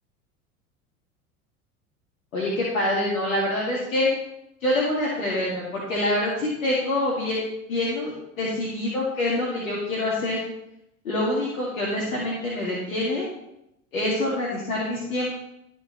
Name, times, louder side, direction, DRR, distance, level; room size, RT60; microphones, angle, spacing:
voice 1, 2.3-4.1 4.6-7.4 7.7-10.4 11.0-13.3 13.9-15.3, left 1 dB, 75° left, -6 dB, 2.4 m, -26 dB
13.5 x 5.0 x 3.3 m, 0.82 s
figure-of-eight pair, 75°, 41 cm